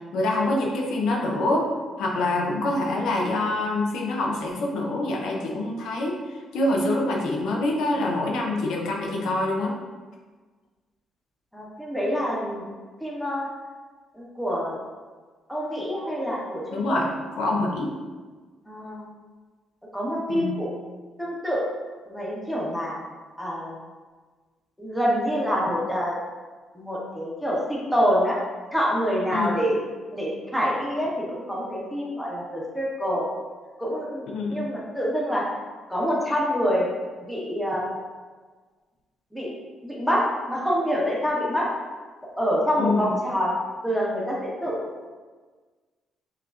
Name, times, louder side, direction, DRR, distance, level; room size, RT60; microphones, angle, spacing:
voice 1, 0.1-1.7 2.0-9.8 16.7-17.1 17.4-17.9 20.3-20.6 29.3-29.5 34.3-34.7 42.8-43.1, left 2 dB, 85° left, -1 dB, 0.6 m, -25 dB
voice 2, 11.5-12.7 13.0-13.5 14.1-14.8 15.5-17.0 18.7-19.1 19.9-20.7 21.2-21.6 22.1-23.0 23.4-23.8 24.8-26.2 26.7-28.4 28.7-29.8 30.1-33.3 33.8-34.2 34.5-35.4 35.9-36.9 37.2-37.9 39.3-39.5 39.8-40.2 40.5-41.7 42.4-43.5 43.8-45.1, equal, ahead, -5 dB, 1.1 m, -26 dB
6.2 x 2.3 x 2.4 m, 1.4 s
cardioid pair, 90°, 0 cm